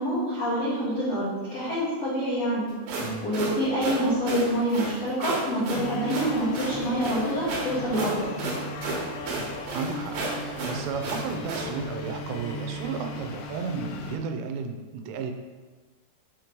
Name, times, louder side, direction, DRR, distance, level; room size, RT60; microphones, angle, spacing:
voice 1, 0.0-2.7 3.2-8.3, equal, 70° left, -11 dB, 1.5 m, -26 dB
sound 1, 2.7-11.7, right 3 dB, 70° right, 3.0 m, -33 dB
sound 2, 5.7-14.2, left 2 dB, 90° left, 3.1 m, -37 dB
voice 2, 9.7-10.2 10.4-15.3, right 5 dB, 90° right, 5 dB, 3.1 m, -33 dB
7.6 x 3.0 x 5.1 m, 1.4 s
omnidirectional pair, 5.5 m